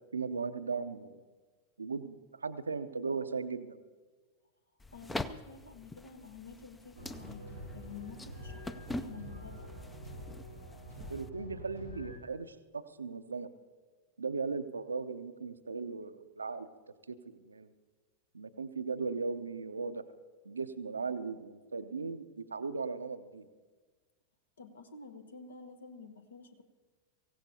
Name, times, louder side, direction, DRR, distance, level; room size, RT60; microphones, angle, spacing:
voice 1, 0.1-1.2 1.8-2.2 2.4-3.8 11.1-13.5 14.2-16.7 17.1-17.7 18.3-20.0 20.5-23.5, right 4 dB, 75° right, 11 dB, 0.6 m, -37 dB
sound 1, 4.8-11.3, left 2 dB, 10° left, 0.5 m, -44 dB
voice 2, 4.9-9.7 24.6-26.6, left 5 dB, 70° left, 9 dB, 1.0 m, -50 dB
sound 2, 7.0-12.2, equal, 85° left, 2.8 m, -46 dB
24.5 x 16.0 x 2.8 m, 1.4 s
figure-of-eight pair, 90°, 0 cm